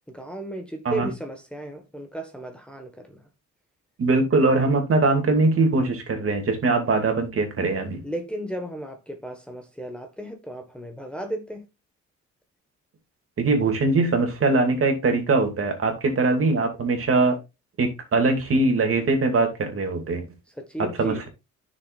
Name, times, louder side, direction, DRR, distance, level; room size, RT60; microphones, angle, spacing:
voice 1, 0.1-3.2 8.0-11.6 20.5-21.2, right 1 dB, 5° left, 1.5 m, -34 dB
voice 2, 4.0-8.0 13.4-17.4 17.8-20.2 20.8-21.3, right 3 dB, 45° right, 2.6 m, -22 dB
9.7 x 6.6 x 2.5 m
cardioid pair, 90°, 30 cm